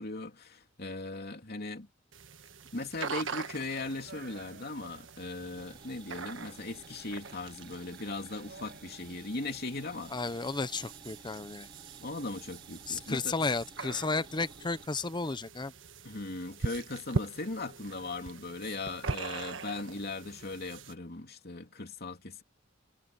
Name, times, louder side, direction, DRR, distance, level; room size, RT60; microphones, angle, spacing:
voice 1, 0.0-1.9 2.7-10.1 12.0-13.4 16.0-22.4, left 2 dB, 55° left, 2.9 m, -38 dB
sound 1, 2.1-20.9, right 4 dB, 80° right, 1.4 m, -42 dB
Speech, 3.4-9.2, right 4 dB, 60° right, 6.2 m, -56 dB
sound 2, 5.6-14.9, right 2 dB, 25° right, 3.9 m, -56 dB
voice 2, 10.1-11.7 12.9-15.7, left 3 dB, 25° left, 0.8 m, -33 dB
head